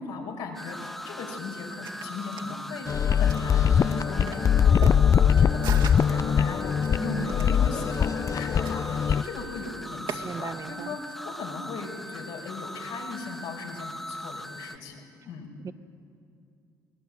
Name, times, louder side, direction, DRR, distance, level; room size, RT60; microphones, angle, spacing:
voice 1, 0.0-15.5, left 4 dB, 80° left, 1 dB, 5.2 m, -38 dB
sound 1, 0.5-14.8, equal, ahead, 1.1 m, -40 dB
sound 2, 1.6-10.2, right 7 dB, 65° right, 2.3 m, -42 dB
sound 3, 2.9-9.2, left 8 dB, 40° left, 0.5 m, -22 dB
voice 2, 7.0-7.4 10.2-11.0 15.6-15.7, right 5 dB, 40° right, 12 dB, 1.0 m, -36 dB
23.0 x 18.5 x 8.9 m, 2.6 s
supercardioid pair, 70°, 9 cm